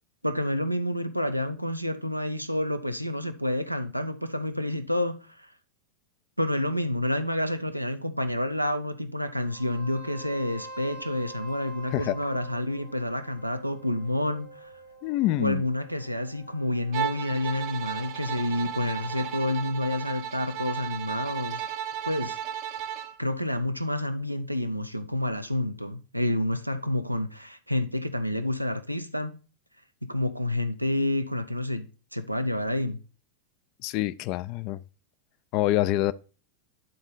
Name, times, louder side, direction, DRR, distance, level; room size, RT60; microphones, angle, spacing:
voice 1, 0.2-5.5 6.4-14.7 15.4-21.6 22.1-22.4 23.2-29.4 30.0-31.9 32.1-33.0, left 1 dB, 90° right, 0.5 m, -29 dB
sound 1, 9.4-19.3, right 1 dB, 75° left, 2.5 m, -47 dB
voice 2, 15.0-15.6 33.8-34.8 35.5-36.1, left 16 dB, 40° left, 0.3 m, -26 dB
Bowed string instrument, 16.9-23.2, right 9 dB, 45° right, 0.6 m, -34 dB
9.9 x 3.9 x 3.8 m
figure-of-eight pair, 90°, 0 cm